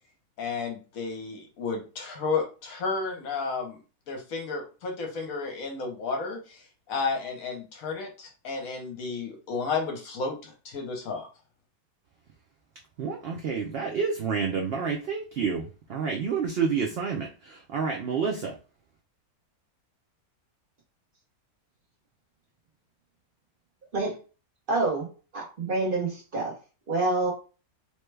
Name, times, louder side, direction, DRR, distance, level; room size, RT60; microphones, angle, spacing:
voice 1, 0.4-3.8 4.1-6.6 6.9-11.3, left 4 dB, 70° left, 3 dB, 1.1 m, -32 dB
voice 2, 13.0-18.5, right 5 dB, 70° right, 2 dB, 0.5 m, -29 dB
voice 3, 24.7-25.1 25.3-26.5 26.9-27.3, right 2 dB, 40° right, -2 dB, 1.1 m, -27 dB
3.2 x 2.2 x 3.2 m, 0.34 s
omnidirectional pair, 1.6 m